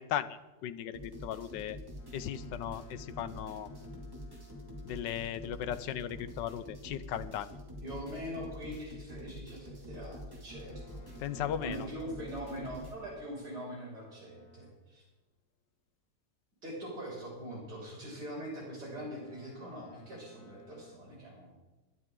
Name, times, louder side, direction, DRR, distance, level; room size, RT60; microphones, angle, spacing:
voice 1, 0.0-1.8 2.1-3.7 4.8-7.5 11.2-11.9, left 10 dB, 90° left, 14 dB, 1.4 m, -37 dB
sound 1, 0.9-12.9, left 1 dB, 10° right, 2.4 m, -46 dB
Boat Water vehicle, 2.0-6.5 10.5-15.0 19.0-21.0, right 1 dB, 65° left, 1.8 m, -59 dB
voice 2, 7.8-11.1 11.6-15.0 16.6-21.6, equal, 70° right, -4 dB, 6.9 m, -42 dB
22.0 x 12.5 x 3.8 m, 1.1 s
omnidirectional pair, 1.9 m